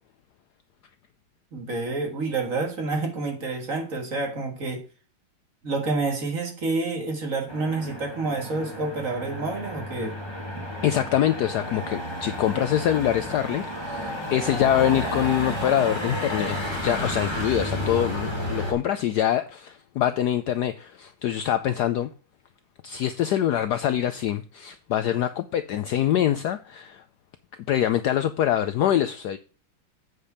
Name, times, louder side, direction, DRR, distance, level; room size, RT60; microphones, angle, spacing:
voice 1, 1.5-4.8 5.6-10.2 10.5-10.7, right 3 dB, 45° right, 2.0 m, -28 dB
Motor vehicle (road), 7.5-18.7, equal, 15° left, 1.9 m, -32 dB
voice 2, 10.8-22.1 22.8-27.0 27.7-29.4, left 11 dB, 70° left, 1.0 m, -24 dB
8.2 x 5.1 x 5.6 m
omnidirectional pair, 2.2 m